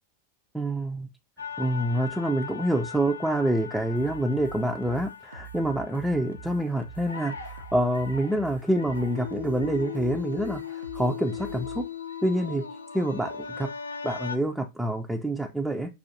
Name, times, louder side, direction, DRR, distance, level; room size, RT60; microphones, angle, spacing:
voice 1, 0.5-1.1 1.6-11.9 12.2-12.7 12.9-13.7 14.0-15.9, right 1 dB, 5° right, 0.4 m, -27 dB
sound 1, 1.4-14.4, left 7 dB, 75° left, 0.5 m, -39 dB
sound 2, 4.0-11.9, right 6 dB, 75° right, 0.4 m, -44 dB
5.8 x 2.4 x 2.6 m
figure-of-eight pair, 90°, 0 cm